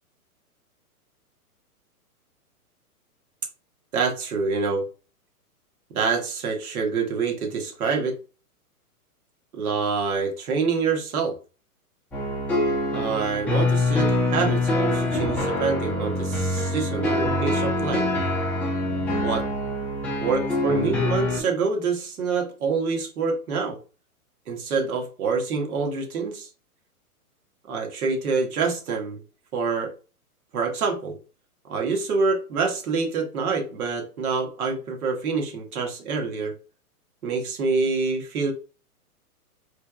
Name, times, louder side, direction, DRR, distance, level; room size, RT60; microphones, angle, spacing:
voice 1, 3.9-4.9 5.9-8.2 9.5-11.3 12.9-18.1 19.2-19.5 20.2-23.8 24.5-26.5 27.7-29.2 29.5-29.9 30.5-31.2 31.6-36.5 37.2-38.5, right 4 dB, 70° right, 1.4 m, -26 dB
sound 1, 12.1-21.4, left 2 dB, 5° left, 0.5 m, -25 dB
4.3 x 3.3 x 2.4 m
hypercardioid pair, 130°, 45 cm